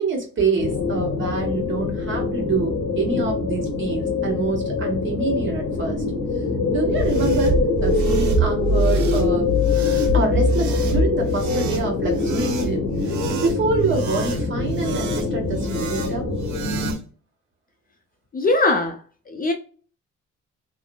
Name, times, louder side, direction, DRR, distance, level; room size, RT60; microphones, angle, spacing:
voice 1, 0.0-6.0 6.7-9.5 10.1-16.3, right 3 dB, 40° right, 1.2 m, -26 dB
sound 1, 0.6-16.9, left 4 dB, 65° left, 0.9 m, -24 dB
sound 2, 6.8-17.0, right 1 dB, 75° right, 0.6 m, -25 dB
voice 2, 18.3-19.0 19.3-19.5, left 2 dB, 30° left, 0.4 m, -20 dB
2.9 x 2.0 x 2.2 m
cardioid pair, 90°, 30 cm